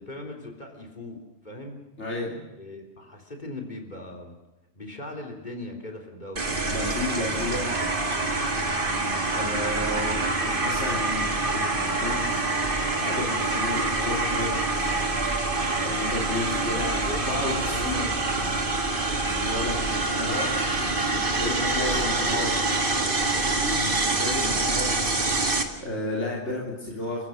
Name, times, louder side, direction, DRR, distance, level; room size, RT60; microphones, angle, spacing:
voice 1, 0.0-1.8 2.6-4.3 4.8-6.8 8.8-9.3 16.5-18.7 21.5-24.1, left 2 dB, 40° left, 1 dB, 3.7 m, -40 dB
voice 2, 2.0-2.5 6.7-7.8 9.3-12.4 13.0-14.6 15.8-18.1 18.5-18.6 19.1-22.5 23.6-27.2, left 2 dB, 85° left, -4 dB, 3.8 m, -33 dB
sound 1, 6.4-25.6, right 3 dB, 50° right, 2.0 m, -26 dB
29.5 x 15.0 x 6.5 m, 1.0 s
omnidirectional pair, 1.2 m